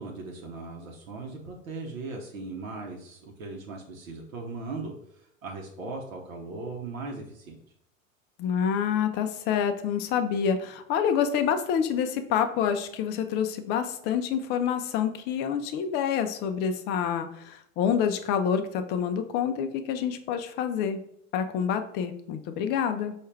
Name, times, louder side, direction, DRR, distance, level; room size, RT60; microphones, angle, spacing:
voice 1, 0.0-7.6, right 3 dB, 80° right, -1 dB, 0.8 m, -38 dB
voice 2, 8.4-21.0 21.3-23.1, left 8 dB, 30° left, 8 dB, 0.4 m, -27 dB
4.4 x 2.4 x 3.2 m, 0.71 s
hypercardioid pair, 95°, 40 cm